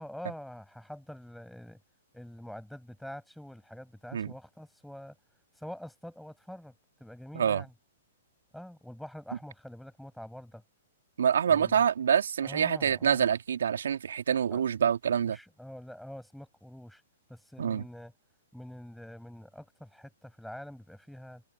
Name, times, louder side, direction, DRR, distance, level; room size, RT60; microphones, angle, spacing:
voice 1, 0.0-1.8 2.1-5.2 5.6-6.7 7.0-7.7 8.5-10.6 11.5-11.9 12.4-13.2 14.5-14.6 15.3-17.0 17.3-18.1 18.5-21.4, equal, ahead, 7.4 m, -45 dB
voice 2, 11.2-15.4 17.6-17.8, right 8 dB, 65° right, 2.6 m, -26 dB
figure-of-eight pair, 115°, 0 cm